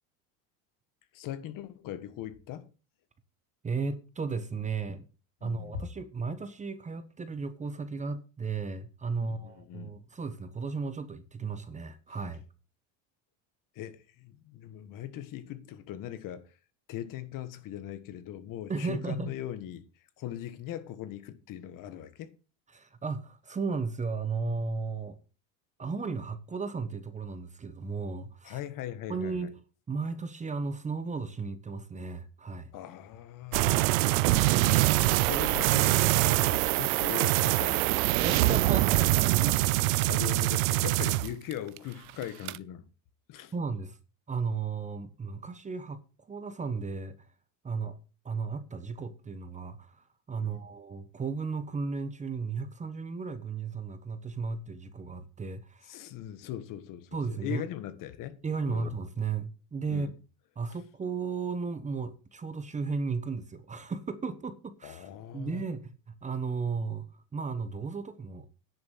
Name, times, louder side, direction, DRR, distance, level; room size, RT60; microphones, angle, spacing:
voice 1, 1.1-2.7 5.4-5.8 9.2-10.0 13.7-16.5 16.9-19.8 20.2-22.3 28.4-29.5 32.7-33.8 34.6-37.9 40.1-42.8 43.3-43.5 50.4-50.6 55.9-58.4 58.7-58.9 59.9-60.1 64.8-65.6, left 11 dB, 50° left, 1.7 m, -40 dB
voice 2, 3.6-5.1 5.4-12.4 18.7-19.3 22.7-25.2 25.8-28.6 29.1-29.5 29.9-32.7 38.2-39.6 43.5-44.0 44.3-46.0 46.3-47.1 47.6-48.0 48.2-56.0 57.1-57.6 58.4-60.1 60.6-68.5, right 4 dB, 15° right, 1.1 m, -35 dB
sound 1, 33.5-41.8 42.1-42.6, right 18 dB, 90° right, 0.7 m, -24 dB
10.5 x 7.0 x 6.4 m
supercardioid pair, 125°, 40 cm